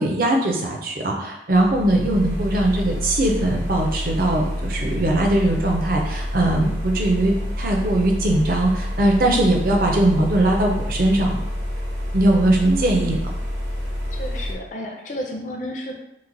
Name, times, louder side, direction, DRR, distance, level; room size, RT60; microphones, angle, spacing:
voice 1, 0.0-11.4 12.1-13.2, right 1 dB, 50° right, 0 dB, 0.5 m, -20 dB
sound 1, 1.5-14.5, equal, 75° right, 0.9 m, -28 dB
voice 2, 12.6-13.2 14.1-16.0, equal, 45° left, 2 dB, 0.5 m, -31 dB
3.0 x 2.1 x 3.8 m, 0.85 s
head